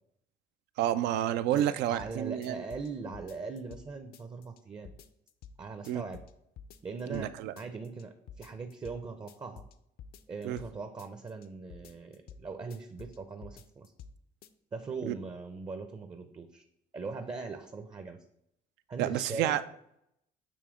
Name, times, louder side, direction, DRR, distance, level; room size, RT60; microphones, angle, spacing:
voice 1, 0.8-2.6 5.9-6.0 7.1-7.5 10.4-10.6 15.1-15.2 19.0-19.6, right 12 dB, 85° right, 14 dB, 0.4 m, -30 dB
voice 2, 1.5-4.9 5.6-6.2 6.8-7.3 7.6-9.7 10.3-13.9 14.7-16.6 16.9-18.2 18.9-19.6, right 4 dB, 25° right, 7 dB, 0.5 m, -40 dB
sound 1, 1.6-2.1 2.4-3.8 4.1-4.6 4.8-5.6 5.8-6.3 6.6-7.3 7.6-8.0 8.3-9.0 9.3-10.7 11.0-11.5 11.7-12.4 12.7-13.2 13.4-14.1 14.4-14.5, left 6 dB, 65° left, 0.5 m, -50 dB
7.0 x 2.9 x 4.9 m, 0.76 s
cardioid pair, 110°, 17 cm